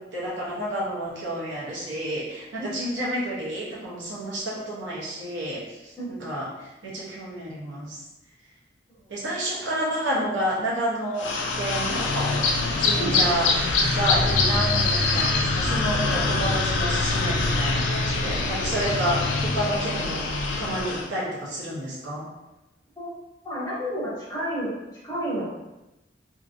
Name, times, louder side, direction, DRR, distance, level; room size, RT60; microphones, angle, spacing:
voice 1, 0.0-5.6 6.1-8.0 9.1-12.3 12.8-13.5 13.9-20.2 20.6-22.3, right 1 dB, 80° right, -6 dB, 0.9 m, -30 dB
sound 1, 11.2-21.1, left 3 dB, 85° left, 0.4 m, -24 dB
voice 2, 23.4-24.7 25.0-25.6, equal, 15° left, -8 dB, 0.6 m, -30 dB
2.8 x 2.6 x 2.5 m, 0.98 s
head